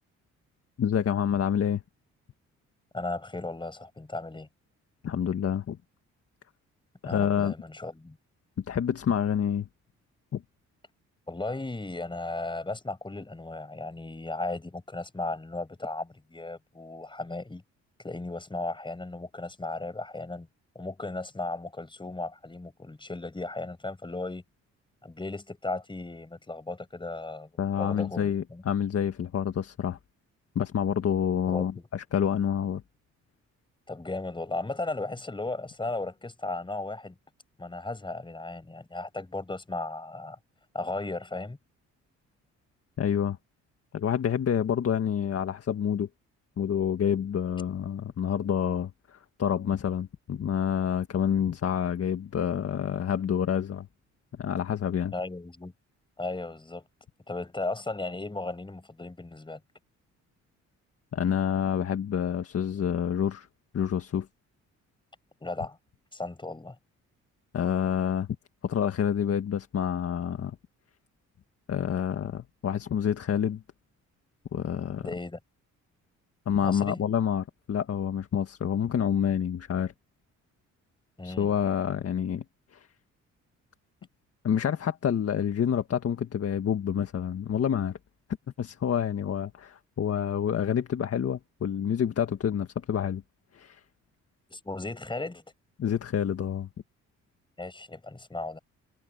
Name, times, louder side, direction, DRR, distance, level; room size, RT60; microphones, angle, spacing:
voice 1, 0.8-1.8 5.0-5.8 7.0-7.5 8.6-9.7 10.3-10.4 27.6-30.0 30.6-32.8 43.0-43.4 43.9-46.1 46.6-53.9 54.4-55.1 61.1-63.5 63.7-64.3 67.5-68.3 68.6-70.6 71.7-73.6 74.5-75.1 76.5-79.9 81.2-82.4 82.7-82.9 84.4-88.0 88.6-93.2 93.5-93.8 95.8-96.7, left 8 dB, 50° left, 1.8 m, -28 dB
voice 2, 2.9-4.5 7.0-8.2 11.3-17.6 18.0-20.5 20.7-24.4 25.0-27.5 27.8-28.6 31.5-31.9 33.9-37.2 37.6-40.4 40.7-41.6 55.1-55.7 56.2-56.9 57.3-59.6 65.4-65.8 66.1-66.8 75.0-75.4 76.6-77.0 81.2-81.5 94.5-95.4 97.6-98.6, left 2 dB, 15° left, 5.9 m, -36 dB
cardioid pair, 90°, 30 cm